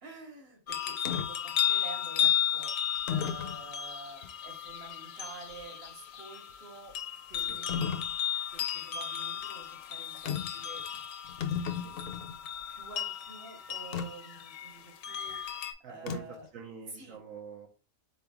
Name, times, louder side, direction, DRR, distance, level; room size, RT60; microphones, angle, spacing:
voice 1, 0.0-2.7 3.1-6.9 7.3-7.9 8.5-11.0 11.9-12.1 12.7-15.6 15.9-16.5 16.9-17.2, right 3 dB, 50° right, 2 dB, 1.5 m, -49 dB
sound 1, 0.7-15.7, left 9 dB, 80° left, 1.0 m, -34 dB
sound 2, 1.0-1.3 2.2-2.3 3.1-3.6 4.2-4.3 7.7-8.1 10.2-10.6 10.9-11.0 11.2-12.3 13.9-14.1 16.1-16.5, left 7 dB, 60° left, 0.6 m, -34 dB
voice 2, 15.8-16.2 16.5-17.7, right 6 dB, 80° right, 1 dB, 1.1 m, -45 dB
4.1 x 3.5 x 3.5 m, 0.36 s
omnidirectional pair, 1.4 m